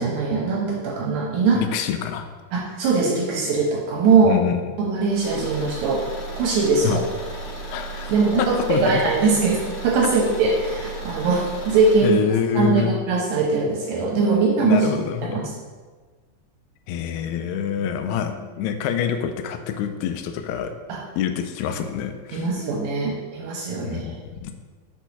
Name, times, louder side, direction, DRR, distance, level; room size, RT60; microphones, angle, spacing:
voice 1, 0.0-1.6 2.5-4.4 4.8-6.1 6.4-7.0 8.1-12.2 12.6-14.8 15.2-15.5 20.9-21.0 22.3-24.1, right 4 dB, 75° right, -2 dB, 2.1 m, -21 dB
voice 2, 1.5-2.3 4.3-4.6 6.8-7.0 7.7-9.0 12.0-12.9 14.6-15.4 16.9-20.8 21.2-22.5 23.8-24.5, left 8 dB, 85° left, 7 dB, 2.6 m, -26 dB
Car / Engine, 5.1-12.1, right 2 dB, 60° left, 2.2 m, -34 dB
6.0 x 4.5 x 5.5 m, 1.4 s
omnidirectional pair, 4.6 m